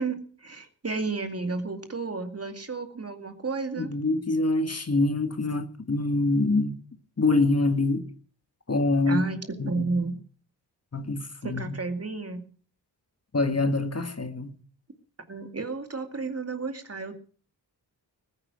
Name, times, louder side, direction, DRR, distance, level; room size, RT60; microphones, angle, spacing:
voice 1, 0.0-3.9 9.1-10.2 11.4-12.4 15.3-17.1, right 3 dB, 35° right, 2.3 m, -32 dB
voice 2, 3.8-6.8 7.2-8.1 8.7-9.2 9.6-10.1 10.9-11.8 13.3-14.5, left 2 dB, 35° left, 1.7 m, -25 dB
20.0 x 9.7 x 6.3 m
wide cardioid pair, 105°, 42 cm